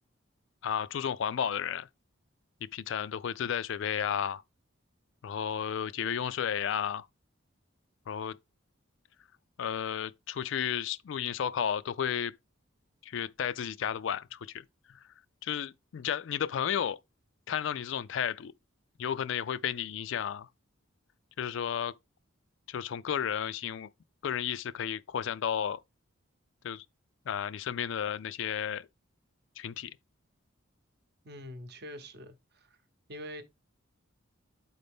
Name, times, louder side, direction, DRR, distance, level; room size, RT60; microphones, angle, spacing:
voice 1, 0.6-1.9 2.7-4.4 5.2-7.1 8.1-8.4 9.6-12.3 13.0-15.0 15.4-17.0 17.5-18.5 19.0-20.5 21.4-21.9 22.7-23.9 24.2-25.8 26.6-26.8 27.3-28.9 29.6-29.9, left 8 dB, 60° left, 0.3 m, -33 dB
voice 2, 31.2-32.8 33.1-33.4, equal, 50° right, 0.8 m, -44 dB
8.4 x 4.0 x 3.4 m
head